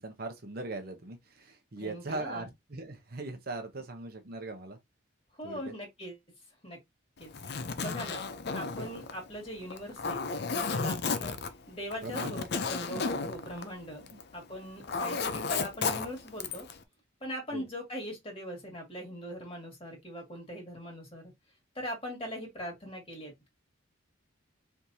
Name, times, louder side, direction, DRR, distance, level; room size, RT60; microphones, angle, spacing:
voice 1, 0.0-4.8 5.4-5.6 12.0-12.5 12.9-13.2 14.1-14.2 17.5-17.7, right 2 dB, 50° right, 0.8 m, -40 dB
voice 2, 1.8-2.5 5.3-6.2 6.6-6.8 7.2-7.3 7.8-8.2 8.5-10.2 10.5-11.4 11.7-14.0 14.3-16.7 17.2-21.3 21.7-23.3, equal, 30° left, 2.0 m, -41 dB
Zipper (clothing), 7.2-14.3 14.6-16.8, left 4 dB, 55° left, 0.5 m, -33 dB
4.5 x 3.4 x 2.7 m
head